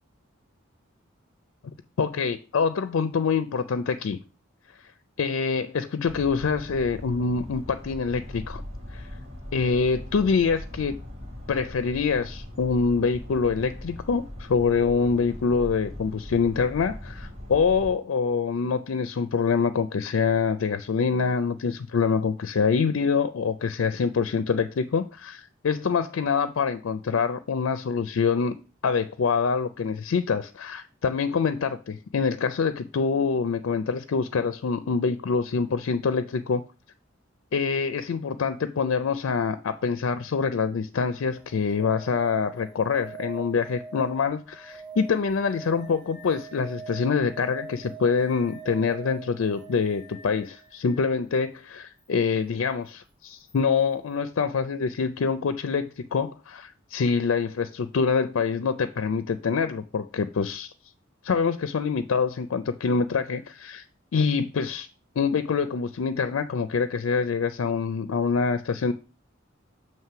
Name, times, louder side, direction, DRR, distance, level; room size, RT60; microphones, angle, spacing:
voice 1, 2.0-4.2 5.2-8.6 8.9-9.1 9.5-10.9 11.5-28.6 28.8-36.6 37.5-60.7 61.2-63.9 64.1-64.9 65.2-68.9, left 5 dB, 80° left, 0.4 m, -25 dB
sound 1, 6.1-17.9, left 1 dB, 80° right, 1.7 m, -40 dB
sound 2, 41.3-51.1 53.5-53.6, right 4 dB, 5° right, 4.4 m, -44 dB
7.5 x 3.1 x 5.6 m
head